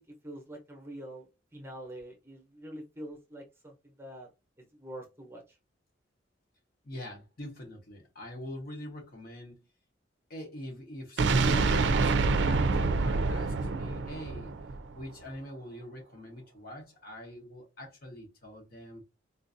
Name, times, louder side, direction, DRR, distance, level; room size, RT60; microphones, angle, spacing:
voice 1, 0.0-4.3 4.7-5.6, right 1 dB, 15° right, 0.8 m, -45 dB
voice 2, 6.8-9.6 10.3-14.5 14.9-19.0, left 1 dB, 55° left, 1.1 m, -44 dB
sound 1, 11.2-15.1, right 3 dB, 70° right, 0.4 m, -26 dB
3.8 x 2.5 x 2.6 m
head